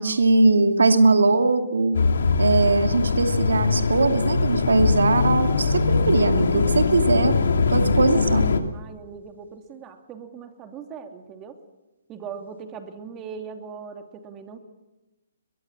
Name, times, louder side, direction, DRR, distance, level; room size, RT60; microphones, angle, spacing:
voice 1, 0.0-2.0 2.4-7.4 7.7-8.5, right 3 dB, 85° right, 6 dB, 2.5 m, -20 dB
sound 1, 1.9-8.6, left 4 dB, 75° left, 2.5 m, -21 dB
voice 2, 8.7-11.6 12.1-14.6, right 6 dB, 20° right, 5 dB, 2.8 m, -40 dB
22.0 x 22.0 x 7.4 m, 1.0 s
hypercardioid pair, 145°, 0 cm